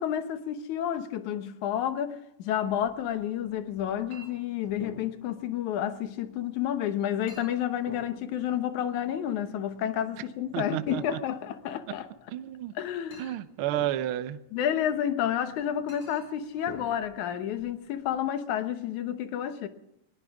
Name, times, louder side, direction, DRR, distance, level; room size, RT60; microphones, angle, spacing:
voice 1, 0.0-12.1 12.8-13.3 14.5-19.7, left 10 dB, 85° left, 2.5 m, -30 dB
Chink clink, 2.6-18.2, left 2 dB, 60° left, 6.2 m, -51 dB
voice 2, 10.5-11.2 12.3-12.7 13.2-14.4, right 13 dB, 75° right, 1.2 m, -31 dB
19.5 x 19.5 x 3.6 m
omnidirectional pair, 3.3 m